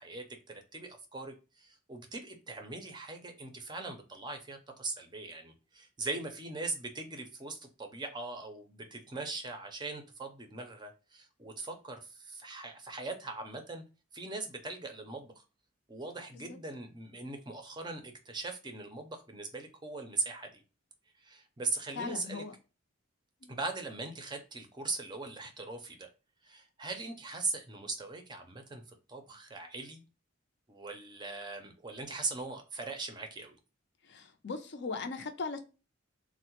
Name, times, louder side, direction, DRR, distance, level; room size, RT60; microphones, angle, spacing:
voice 1, 0.0-13.8 14.1-15.4 15.9-20.6 21.2-22.4 23.5-26.1 26.4-28.8 29.1-30.0 30.7-33.6, right 3 dB, 20° right, 0.5 m, -40 dB
voice 2, 21.9-22.6 23.4-23.6 34.0-35.6, left 4 dB, 60° left, 0.5 m, -39 dB
3.5 x 2.1 x 2.8 m
head